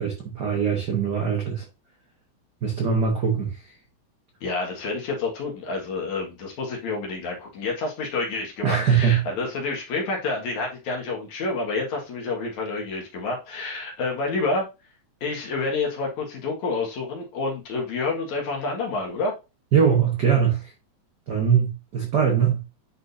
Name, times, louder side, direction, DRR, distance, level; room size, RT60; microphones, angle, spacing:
voice 1, 0.0-1.6 2.6-3.5 8.6-9.2 19.7-20.7 21.3-22.6, right 7 dB, 55° right, 1.2 m, -22 dB
voice 2, 4.4-14.7 15.2-19.3, left 3 dB, 70° left, 3.1 m, -28 dB
10.0 x 4.2 x 2.7 m
omnidirectional pair, 3.5 m